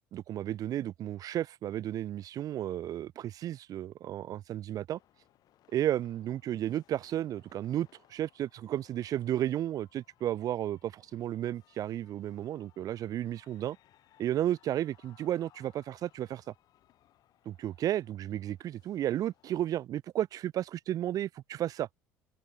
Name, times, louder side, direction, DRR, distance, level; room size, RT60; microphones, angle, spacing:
voice 1, 0.0-5.0 5.7-13.8 14.2-16.4 17.5-21.9, right 12 dB, 55° right, 0.9 m, -33 dB
sound 1, 4.9-19.7, left 13 dB, 60° left, 7.4 m, -66 dB
open air
hypercardioid pair, 70°, 7 cm